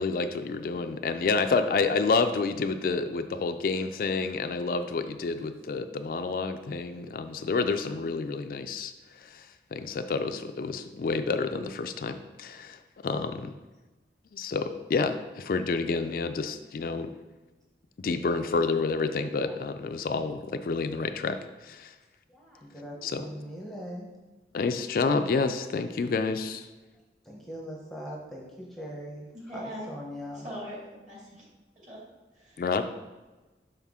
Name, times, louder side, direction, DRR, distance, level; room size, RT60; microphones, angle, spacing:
voice 1, 0.0-8.9 9.2-9.4 9.7-12.8 13.0-13.5 14.3-17.1 18.0-21.4 21.6-21.9 23.0-23.3 24.5-26.6 32.6-32.8, left 4 dB, 50° left, 8 dB, 0.3 m, -29 dB
voice 2, 22.3-24.1 27.2-30.5, equal, ahead, -3 dB, 0.7 m, -41 dB
voice 3, 29.3-29.9 30.4-31.4 31.8-32.0 32.3-32.6, equal, 40° right, -5 dB, 2.1 m, -41 dB
5.7 x 5.4 x 3.6 m, 1.2 s
head